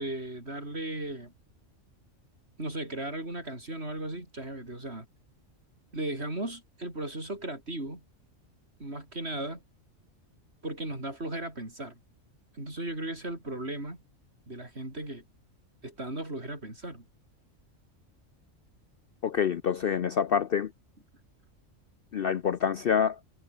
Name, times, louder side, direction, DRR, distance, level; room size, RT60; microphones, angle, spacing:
voice 1, 0.0-1.3 2.6-5.1 5.9-8.0 8.8-9.6 10.6-12.0 12.5-14.0 14.5-15.2 15.8-17.0, right 1 dB, 50° right, 6.5 m, -36 dB
voice 2, 19.2-20.7 22.1-23.2, left 7 dB, 55° left, 0.7 m, -27 dB
omnidirectional pair, 1.4 m